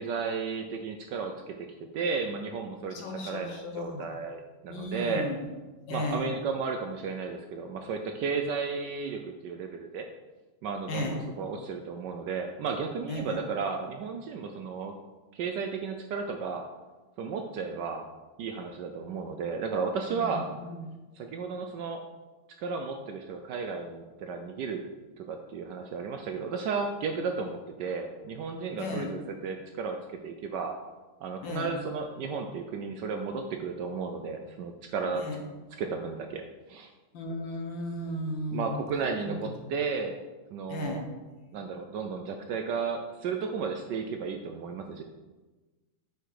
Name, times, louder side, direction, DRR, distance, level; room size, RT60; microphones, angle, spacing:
voice 1, 0.0-1.5 1.8-5.3 5.9-10.1 10.6-14.9 15.3-16.6 17.2-18.1 18.4-20.5 21.2-22.0 22.6-24.8 25.2-30.0 30.2-30.7 31.2-35.2 35.8-36.4 36.7-36.9 38.5-40.1 40.5-41.0 41.5-45.0, right 5 dB, 80° right, 4 dB, 0.9 m, -33 dB
voice 2, 2.9-4.1 4.7-5.4 5.9-6.3 10.9-11.2 13.1-13.4 20.1-20.9 28.8-29.1 31.4-31.7 35.2-35.4 37.1-38.8 39.3-39.5 40.7-41.0, left 1 dB, 65° left, 1 dB, 1.6 m, -35 dB
6.9 x 4.3 x 4.7 m, 1.2 s
omnidirectional pair, 2.4 m